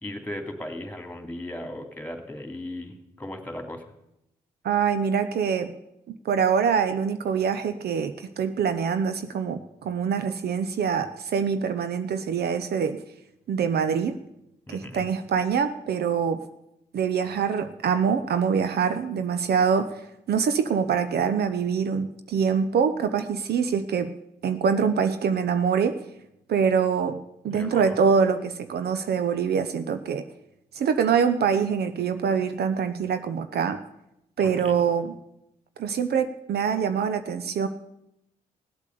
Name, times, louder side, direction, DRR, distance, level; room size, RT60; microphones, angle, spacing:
voice 1, 0.0-3.8 14.7-15.0 27.5-28.0 34.4-34.7, left 1 dB, 10° left, 5 dB, 2.8 m, -37 dB
voice 2, 4.6-5.7 6.1-13.0 13.5-14.2 14.7-16.4 16.9-24.1 24.4-26.0 26.5-30.3 30.7-33.8 34.4-35.1 35.8-37.7, right 6 dB, 60° right, 10 dB, 0.8 m, -24 dB
16.5 x 8.3 x 6.8 m, 0.84 s
hypercardioid pair, 45°, 18 cm